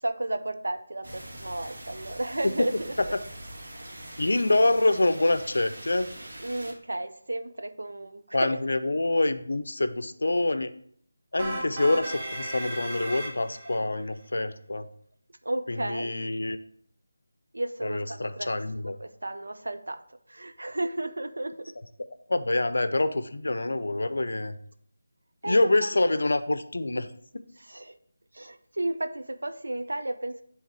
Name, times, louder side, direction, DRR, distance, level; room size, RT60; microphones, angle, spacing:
voice 1, 0.0-3.1 4.1-4.2 6.4-8.6 15.4-16.1 17.5-20.0 20.3-21.7 25.4-26.0 27.6-28.0 28.3-30.4, right 1 dB, 85° right, 9 dB, 0.6 m, -33 dB
sound 1, 1.0-6.7, right 1 dB, 65° right, 1.9 m, -43 dB
voice 2, 4.2-6.1 8.3-10.7 11.3-14.9 15.7-16.6 17.8-19.0 22.3-24.6 25.4-27.1 27.3-27.4, left 2 dB, 75° left, 11 dB, 0.5 m, -26 dB
sound 2, 11.4-13.8, right 1 dB, 25° right, 1.3 m, -35 dB
7.1 x 3.5 x 4.7 m, 0.63 s
figure-of-eight pair, 165°, 0 cm